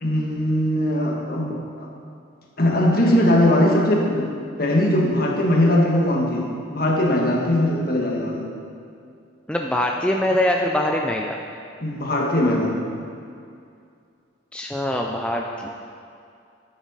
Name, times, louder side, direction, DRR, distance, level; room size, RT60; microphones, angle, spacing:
voice 1, 0.0-1.9 2.6-4.3 4.6-8.5 11.8-12.8, left 1 dB, 50° left, -1 dB, 1.5 m, -20 dB
voice 2, 9.5-11.4 14.5-15.7, left 1 dB, 5° left, 0 dB, 0.4 m, -23 dB
10.0 x 9.4 x 4.1 m, 2.4 s
head